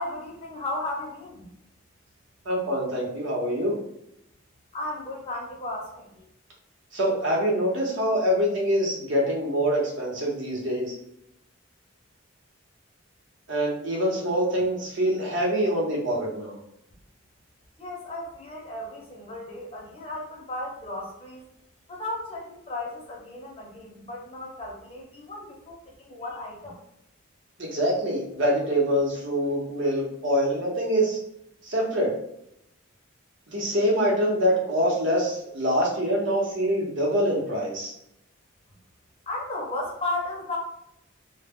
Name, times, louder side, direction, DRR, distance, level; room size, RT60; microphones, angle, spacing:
voice 1, 0.0-1.5 4.7-6.2 17.8-21.4 21.9-26.7 39.3-40.6, left 2 dB, 30° left, -1 dB, 0.6 m, -35 dB
voice 2, 2.4-3.7 6.9-10.9 13.5-16.6 27.6-31.2 31.6-32.1 33.5-37.9, equal, 60° right, -3 dB, 0.8 m, -25 dB
2.1 x 2.1 x 3.5 m, 0.79 s
head